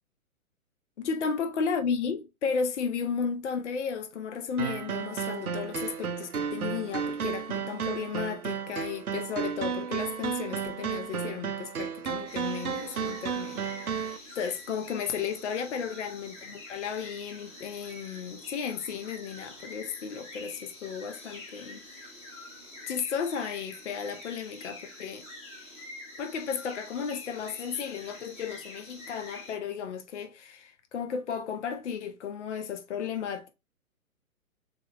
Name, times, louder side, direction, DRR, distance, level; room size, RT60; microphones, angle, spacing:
voice 1, 1.0-21.8 22.9-25.2 26.2-33.5, left 6 dB, 55° left, 0.7 m, -34 dB
sound 1, 4.6-14.2, right 7 dB, 85° right, 0.6 m, -33 dB
sound 2, 12.3-29.6, left 2 dB, 15° left, 1.0 m, -46 dB
6.9 x 2.9 x 2.2 m
figure-of-eight pair, 125°, 43 cm